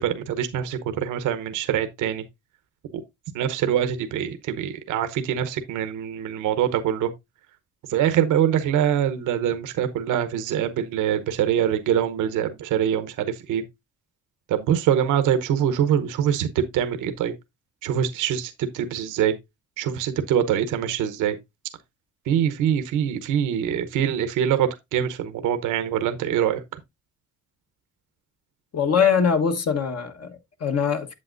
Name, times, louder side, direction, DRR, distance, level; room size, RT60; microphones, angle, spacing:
voice 1, 0.0-2.2 2.9-3.0 3.3-7.1 7.9-13.6 14.5-17.3 17.8-19.3 19.8-21.4 22.3-26.6, right 9 dB, 90° right, 0.9 m, -24 dB
voice 2, 28.7-31.1, left 7 dB, 55° left, 1.3 m, -22 dB
8.6 x 7.4 x 2.5 m
cardioid pair, 90°, 30 cm